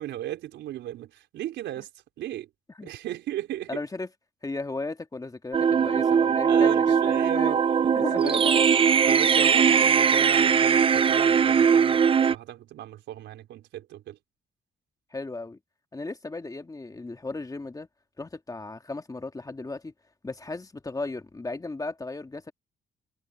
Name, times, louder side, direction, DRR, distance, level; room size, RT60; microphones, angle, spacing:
voice 1, 0.0-1.9 2.2-2.5 2.8-3.8 6.5-8.4 9.1-14.2, right 13 dB, 85° right, 4.4 m, -36 dB
voice 2, 3.7-4.1 4.4-7.6 7.9-8.6 15.1-15.6 15.9-17.9 18.2-19.9 20.2-22.5, left 3 dB, 20° left, 2.1 m, -35 dB
sound 1, 5.5-12.4, right 7 dB, 30° right, 0.4 m, -20 dB
cardioid pair, 90°, 18 cm